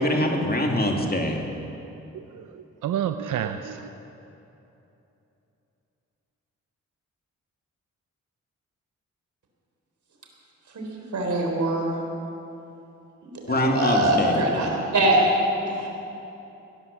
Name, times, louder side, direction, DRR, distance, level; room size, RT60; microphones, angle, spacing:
voice 1, 0.0-1.4 13.5-14.4, left 1 dB, 30° left, 1 dB, 2.5 m, -23 dB
voice 2, 1.8-3.9, right 9 dB, 85° right, 9 dB, 0.7 m, -31 dB
voice 3, 11.1-11.9 13.5-15.2 15.7-16.1, right 1 dB, 65° right, 0 dB, 3.9 m, -23 dB
17.0 x 11.0 x 7.4 m, 2.9 s
cardioid pair, 60°, 31 cm